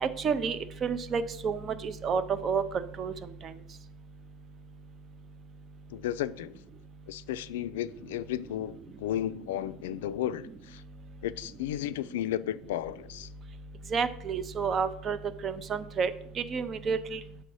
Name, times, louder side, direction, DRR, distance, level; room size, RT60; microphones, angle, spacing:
voice 1, 0.0-3.1 3.4-3.5 13.9-15.2 15.4-16.1 16.4-17.2, right 5 dB, 35° right, 0.6 m, -30 dB
voice 2, 5.9-6.5 7.1-10.8 11.2-13.3, left 12 dB, 90° left, 0.3 m, -34 dB
7.4 x 3.3 x 5.5 m
supercardioid pair, 110°, 0 cm